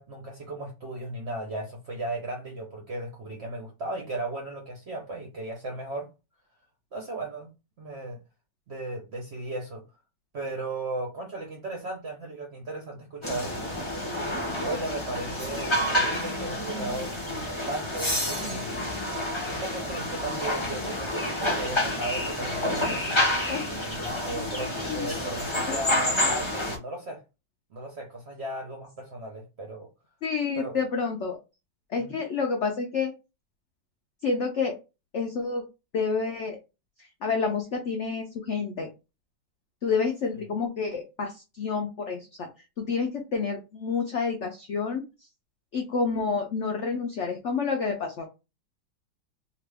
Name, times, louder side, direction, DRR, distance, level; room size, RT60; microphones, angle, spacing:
voice 1, 0.0-6.1 6.9-7.5 7.8-8.2 8.7-9.8 10.3-13.5 14.1-17.1 17.7-18.9 19.5-23.3 24.0-27.2 27.7-29.9 30.6-30.8 32.0-32.2, right 2 dB, 60° right, 0.7 m, -36 dB
sound 1, 13.2-26.8, left 1 dB, 35° left, 0.5 m, -29 dB
voice 2, 24.8-25.1 30.2-31.4 31.9-33.1 34.2-34.7 35.1-35.6 35.9-36.6 37.0-38.9 39.8-42.5 42.8-45.0 45.7-48.3, left 5 dB, 80° left, 0.6 m, -29 dB
2.8 x 2.5 x 3.3 m
omnidirectional pair, 2.0 m